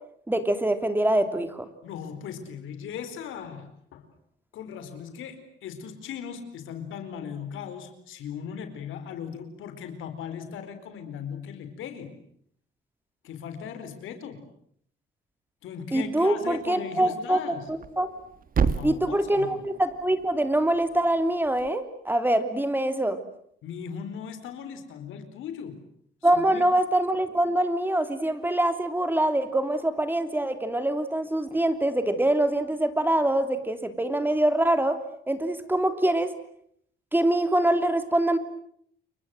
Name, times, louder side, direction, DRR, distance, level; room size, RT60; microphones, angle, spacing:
voice 1, 0.3-1.7 15.9-17.4 17.7-18.1 18.8-23.2 26.2-35.0 35.3-36.3 37.1-38.4, right 1 dB, 10° right, 9 dB, 3.1 m, -24 dB
voice 2, 1.8-4.1 4.5-12.1 13.2-14.5 15.6-17.7 18.6-19.6 23.6-25.8 26.3-26.6, left 7 dB, 85° left, 9 dB, 4.3 m, -38 dB
Thump thud, 17.6-21.7, right 6 dB, 45° right, 1.6 m, -32 dB
29.0 x 23.5 x 7.8 m, 0.66 s
cardioid pair, 90°, 20 cm